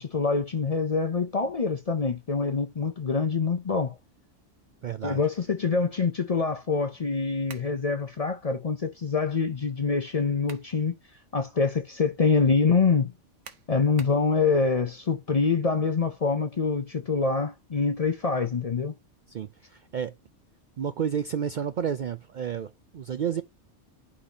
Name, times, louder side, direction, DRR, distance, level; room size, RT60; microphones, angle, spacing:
voice 1, 0.0-4.0 5.0-11.0 11.3-13.1 13.7-18.9, left 4 dB, 40° left, 0.6 m, -25 dB
voice 2, 4.8-5.2 19.3-20.1 20.8-23.4, right 8 dB, 60° right, 0.5 m, -31 dB
sound 1, 7.5-7.8 10.1-10.8 11.3-11.4 13.4-14.3, right 6 dB, 80° right, 1.3 m, -47 dB
11.5 x 4.2 x 2.8 m
omnidirectional pair, 1.2 m